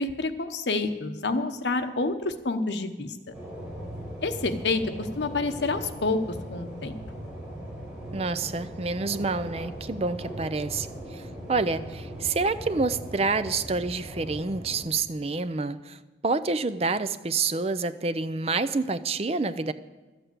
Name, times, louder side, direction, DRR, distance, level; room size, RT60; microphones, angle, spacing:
voice 1, 0.0-3.1 4.2-6.2 6.5-6.9, left 3 dB, 75° left, 8 dB, 1.0 m, -28 dB
sound 1, 3.3-14.9, equal, 5° right, 4.7 m, -39 dB
voice 2, 8.1-11.2 11.5-19.7, right 3 dB, 35° right, 12 dB, 0.5 m, -28 dB
13.0 x 7.9 x 8.2 m, 1.2 s
head